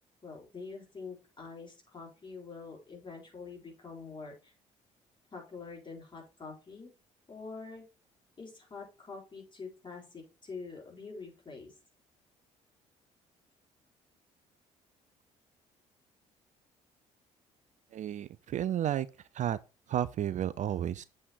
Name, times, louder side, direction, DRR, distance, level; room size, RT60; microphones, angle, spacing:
voice 1, 0.2-4.5 5.3-6.9 7.3-7.8 8.4-11.7, left 4 dB, 30° left, 4.1 m, -45 dB
voice 2, 17.9-19.6 19.9-21.0, right 11 dB, 50° right, 0.4 m, -32 dB
7.4 x 4.3 x 4.8 m
hypercardioid pair, 50°, 17 cm